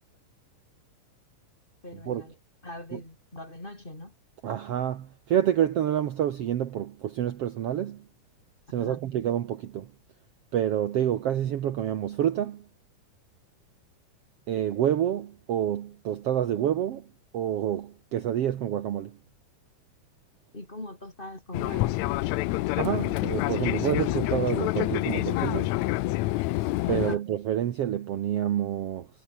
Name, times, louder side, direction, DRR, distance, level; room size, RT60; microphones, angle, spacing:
voice 1, 1.8-2.3 2.6-4.1 8.8-9.0 20.5-22.1 26.9-27.2, left 1 dB, 15° left, 3.2 m, -41 dB
voice 2, 4.4-8.0 8.7-9.9 10.5-12.6 14.5-17.1 17.3-19.2 22.8-25.7 26.9-29.1, right 10 dB, 60° right, 1.8 m, -28 dB
Fixed-wing aircraft airplane, 21.5-27.2, left 19 dB, 80° left, 1.7 m, -27 dB
omnidirectional pair, 3.7 m